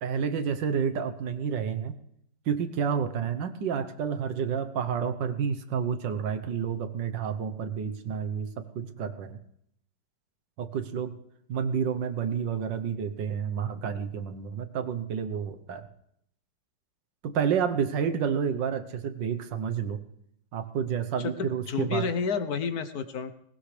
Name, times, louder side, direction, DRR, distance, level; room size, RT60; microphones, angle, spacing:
voice 1, 0.0-2.0 2.5-9.4 10.6-11.2 11.5-15.9 17.2-20.0 20.5-22.1, right 7 dB, 75° right, 10 dB, 1.7 m, -30 dB
voice 2, 21.2-23.3, left 5 dB, 60° left, 10 dB, 1.3 m, -30 dB
19.5 x 19.0 x 3.3 m, 0.72 s
omnidirectional pair, 2.0 m